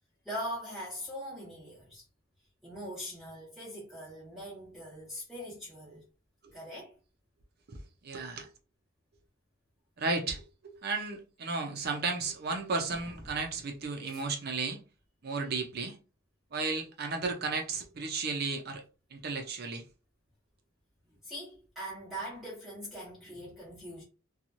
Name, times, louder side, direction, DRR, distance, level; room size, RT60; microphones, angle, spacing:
voice 1, 0.2-2.0 2.6-6.0 6.5-6.9 13.0-13.4 14.0-14.2 21.2-24.0, equal, ahead, 0.9 m, -42 dB
voice 2, 8.0-8.5 10.0-14.8 15.2-16.0 16.5-18.8 19.1-19.8, right 4 dB, 50° right, 0.5 m, -34 dB
2.9 x 2.3 x 2.6 m
head